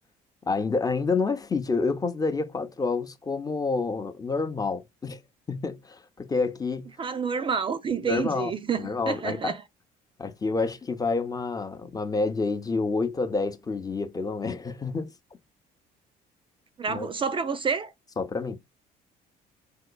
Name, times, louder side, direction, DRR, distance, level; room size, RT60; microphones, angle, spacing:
voice 1, 0.5-5.2 5.5-6.9 8.0-8.5 8.8-9.5 10.2-15.1 16.9-17.1 18.2-18.6, left 4 dB, 20° left, 0.7 m, -28 dB
voice 2, 7.0-9.6 16.8-17.9, right 6 dB, 30° right, 0.4 m, -29 dB
3.7 x 2.8 x 2.2 m
cardioid pair, 110°, 17 cm